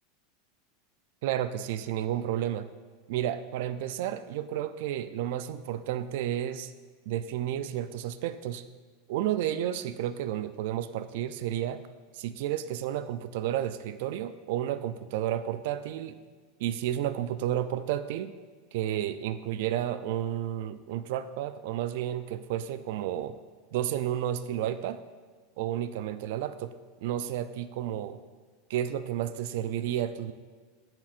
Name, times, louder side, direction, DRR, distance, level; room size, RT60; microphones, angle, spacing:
voice 1, 1.2-2.7 3.1-6.7 7.1-8.6 9.1-11.8 12.1-16.2 16.6-18.3 18.7-23.3 23.7-25.0 25.6-26.7 27.0-28.2 28.7-30.3, right 11 dB, 65° right, 12 dB, 0.3 m, -31 dB
10.5 x 4.4 x 2.5 m, 1.5 s
supercardioid pair, 150°, 0 cm